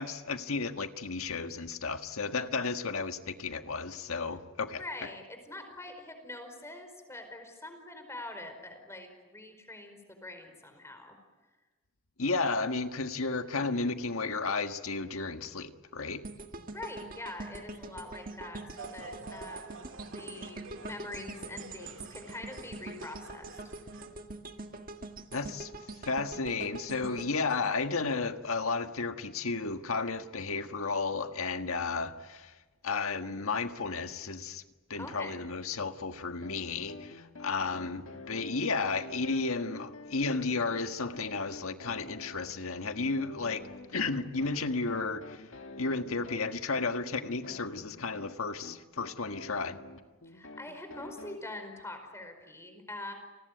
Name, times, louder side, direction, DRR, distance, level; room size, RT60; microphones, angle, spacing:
voice 1, 0.0-5.1 12.2-16.2 25.3-25.7 26.0-32.5 32.8-34.6 34.9-45.4 45.8-49.8, left 4 dB, 85° left, 1.6 m, -33 dB
voice 2, 4.8-11.1 16.7-23.4 35.0-35.4 50.2-53.1, left 2 dB, 15° left, 4.8 m, -44 dB
sound 1, 16.2-28.4 28.8-29.0, right 2 dB, 40° right, 1.6 m, -44 dB
sound 2, 18.8-24.1, right 4 dB, 60° right, 2.3 m, -49 dB
sound 3, 36.4-51.4, left 2 dB, 65° left, 1.7 m, -48 dB
29.5 x 19.5 x 9.3 m
head